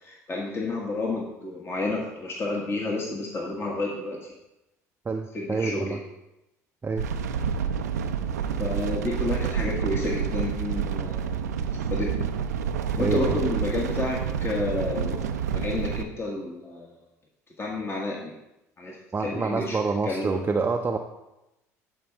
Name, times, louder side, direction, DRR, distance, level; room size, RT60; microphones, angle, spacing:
voice 1, 0.0-4.3 5.3-6.0 8.6-12.2 13.0-16.9 17.6-18.3 18.8-19.0 19.2-19.8 20.0-20.4, left 2 dB, 30° left, -2 dB, 1.5 m, -30 dB
voice 2, 5.1-6.0 6.8-7.1 13.0-13.4 19.1-21.0, right 4 dB, 25° right, 3 dB, 0.6 m, -27 dB
sound 1, 7.0-16.0, right 7 dB, 85° right, 0.5 m, -28 dB
12.5 x 4.7 x 3.4 m, 0.92 s
hypercardioid pair, 60°, 9 cm